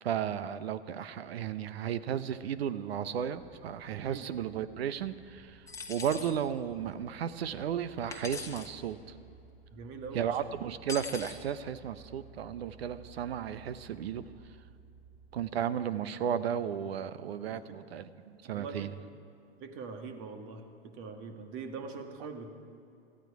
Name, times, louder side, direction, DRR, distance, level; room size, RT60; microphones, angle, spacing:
voice 1, 0.0-9.0 10.1-14.2 15.3-18.9, right 9 dB, 70° right, 14 dB, 0.9 m, -34 dB
sound 1, 3.2-15.5, right 4 dB, 15° right, 1.1 m, -56 dB
sound 2, 5.7-6.3 8.1-8.7 10.9-11.4, left 4 dB, 10° left, 1.2 m, -41 dB
voice 2, 9.7-10.4 17.4-17.7 18.5-18.9 19.6-22.5, right 4 dB, 40° right, 5 dB, 1.8 m, -43 dB
18.0 x 14.5 x 4.8 m, 2.7 s
hypercardioid pair, 105°, 32 cm